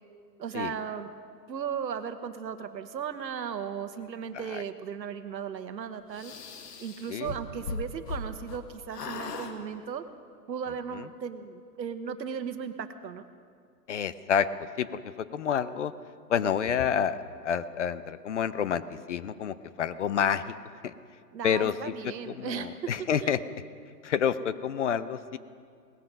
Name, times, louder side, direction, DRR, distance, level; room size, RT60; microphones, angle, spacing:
voice 1, 0.4-1.1 1.5-6.3 6.8-10.0 10.5-13.3 21.3-22.9 23.2-23.3, right 7 dB, 90° right, 10 dB, 1.3 m, -36 dB
sound 1, 6.1-8.6 8.9-9.5, left 4 dB, 65° left, 1.8 m, -38 dB
voice 2, 13.9-14.5 14.8-15.9 16.3-20.5 20.8-20.9 21.4-23.4 24.0-25.4, left 8 dB, 45° left, 15 dB, 0.6 m, -29 dB
18.5 x 13.5 x 5.4 m, 2.2 s
hypercardioid pair, 155°, 50 cm